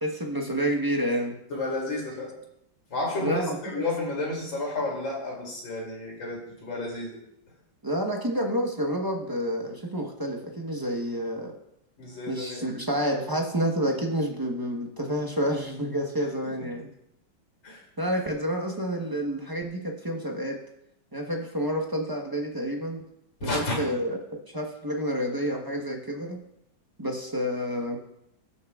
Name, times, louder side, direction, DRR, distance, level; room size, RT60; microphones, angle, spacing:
voice 1, 0.0-1.4 3.2-3.8 7.8-11.6 12.3-16.9 18.0-20.6 21.1-23.0 23.4-26.4 27.0-28.0, equal, 20° right, 1 dB, 0.6 m, -29 dB
voice 2, 1.5-2.3 2.9-7.2 12.0-12.7 16.4-16.5 17.6-17.8 23.4-23.7, left 2 dB, 75° left, -3 dB, 3.5 m, -31 dB
19.0 x 6.8 x 2.4 m, 0.79 s
omnidirectional pair, 2.1 m